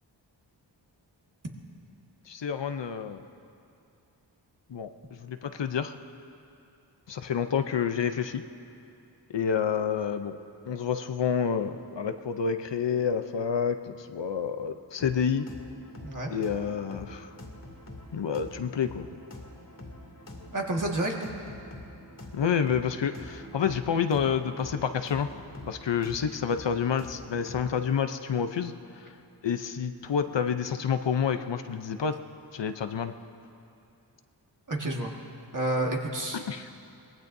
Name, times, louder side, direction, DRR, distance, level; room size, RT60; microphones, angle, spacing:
voice 1, 2.3-3.2 4.7-6.0 7.1-8.4 9.3-10.4 10.6-15.5 16.3-17.3 18.1-19.1 22.3-25.3 25.7-29.1 29.4-32.2 32.5-33.1 36.3-36.7, left 7 dB, 70° left, 9 dB, 0.7 m, -29 dB
sound 1, 15.0-27.8, left 1 dB, 45° left, 2.6 m, -45 dB
voice 2, 20.5-21.3 34.7-35.1 35.5-36.4, right 1 dB, 45° right, -1 dB, 1.9 m, -29 dB
23.5 x 19.0 x 2.7 m, 2.6 s
wide cardioid pair, 85°, 45 cm